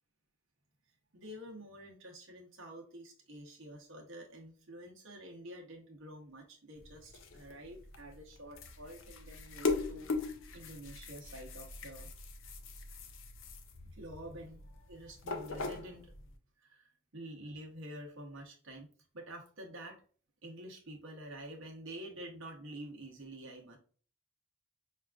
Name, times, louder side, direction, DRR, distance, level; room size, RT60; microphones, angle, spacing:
voice 1, 1.1-10.1 10.5-12.1 13.8-14.6 14.9-16.1 16.6-18.9 19.1-20.0 20.4-23.8, right 1 dB, 60° right, 0 dB, 0.8 m, -48 dB
sound 1, 6.8-16.3, left 3 dB, 60° left, 0.5 m, -40 dB
5.3 x 2.4 x 2.3 m, 0.43 s
head